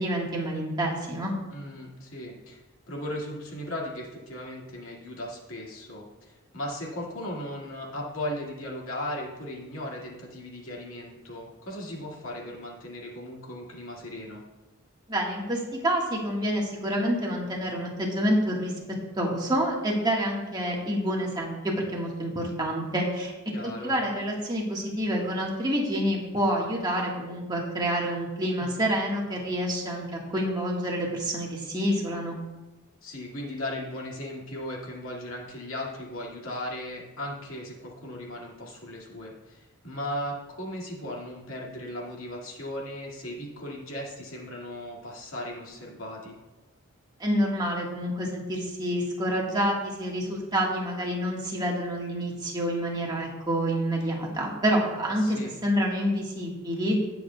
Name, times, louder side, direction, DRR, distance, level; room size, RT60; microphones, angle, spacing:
voice 1, 0.0-1.3 15.1-18.7 19.1-23.3 23.6-32.4 47.2-57.1, equal, 20° right, -2 dB, 1.6 m, -28 dB
voice 2, 1.5-2.6 2.9-14.4 23.5-24.0 28.6-28.9 33.0-46.4 55.2-55.5, left 1 dB, 75° left, -2 dB, 2.2 m, -37 dB
18.0 x 7.1 x 2.3 m, 1.1 s
head